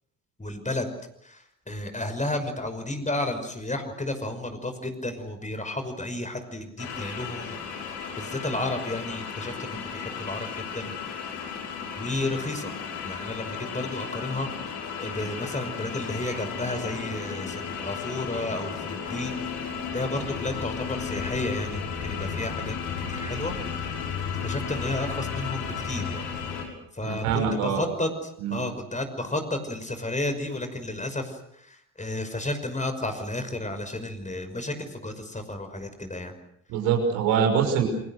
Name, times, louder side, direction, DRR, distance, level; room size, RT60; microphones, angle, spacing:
voice 1, 0.4-0.9 1.2-10.9 11.2-11.3 12.0-12.8 13.0-14.5 15.0-19.4 19.9-22.8 23.1-23.5 24.4-26.2 26.9-36.3, left 2 dB, 15° left, 7 dB, 5.8 m, -32 dB
sound 1, 6.8-26.6, left 6 dB, 65° left, 6.5 m, -34 dB
voice 2, 27.0-27.8 28.4-28.6 36.7-37.8, right 7 dB, 70° right, 4 dB, 6.1 m, -24 dB
28.5 x 25.5 x 6.5 m, 0.71 s
figure-of-eight pair, 50°, 42 cm